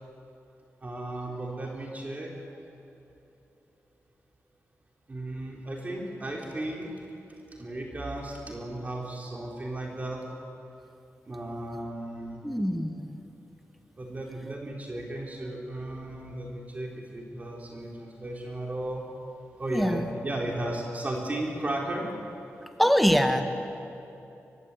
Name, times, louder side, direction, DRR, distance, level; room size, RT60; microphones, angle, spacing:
voice 1, 0.8-2.6 5.1-7.1 7.5-10.3 11.2-12.4 13.9-19.1 19.6-22.1, right 1 dB, 30° right, -1 dB, 3.5 m, -35 dB
voice 2, 12.4-13.2 19.7-20.1 22.8-23.4, equal, ahead, 6 dB, 1.6 m, -24 dB
24.0 x 20.0 x 8.3 m, 2.8 s
wide cardioid pair, 130°, 5 cm